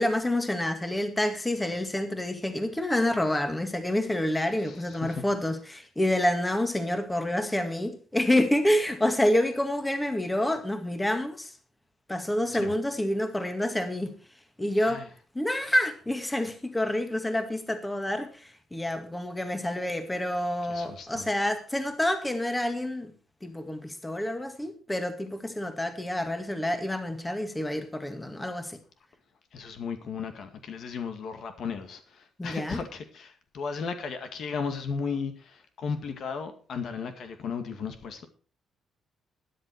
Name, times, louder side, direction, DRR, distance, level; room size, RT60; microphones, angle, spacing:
voice 1, 0.0-11.5 12.1-14.1 14.6-15.0 15.4-23.1 23.4-28.8 32.4-32.8, left 1 dB, 10° left, 2.0 m, -28 dB
voice 2, 4.6-5.2 12.5-12.7 14.8-15.1 20.6-21.3 29.5-38.3, left 5 dB, 65° left, 2.0 m, -35 dB
12.5 x 10.5 x 4.6 m
cardioid pair, 90°, 0 cm